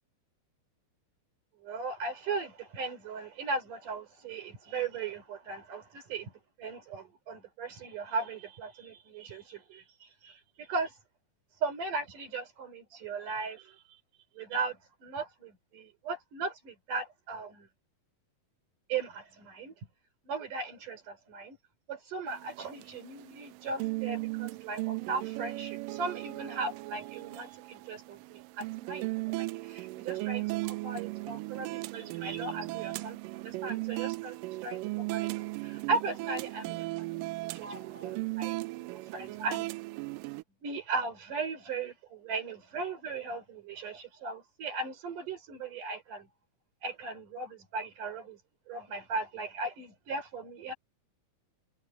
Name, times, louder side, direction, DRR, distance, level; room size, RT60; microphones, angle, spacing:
voice 1, 1.6-6.3 6.6-11.0 11.6-13.8 14.4-17.7 18.9-19.7 20.2-21.6 21.9-34.4 34.6-39.7 40.6-46.3 46.8-48.4 48.7-50.7, right 4 dB, 70° right, 5.8 m, -37 dB
sound 1, 22.3-40.4, right 22 dB, 90° right, 2.3 m, -37 dB
omnidirectional pair, 3.8 m